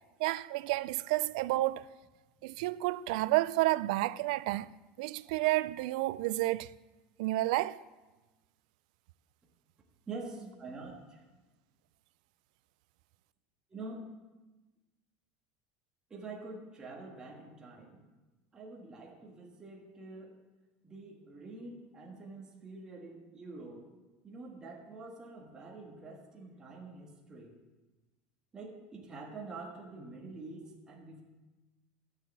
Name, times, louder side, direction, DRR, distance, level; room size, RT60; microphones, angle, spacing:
voice 1, 0.2-1.8 2.4-4.7 5.0-6.7 7.2-7.8, right 18 dB, 75° right, 0.4 m, -30 dB
voice 2, 10.1-11.2 13.7-14.1 16.1-18.0 18.5-20.4 20.8-23.9 24.2-27.6 28.5-31.2, right 3 dB, 15° right, 1.8 m, -46 dB
12.5 x 6.7 x 7.5 m
cardioid pair, 160°, 4 cm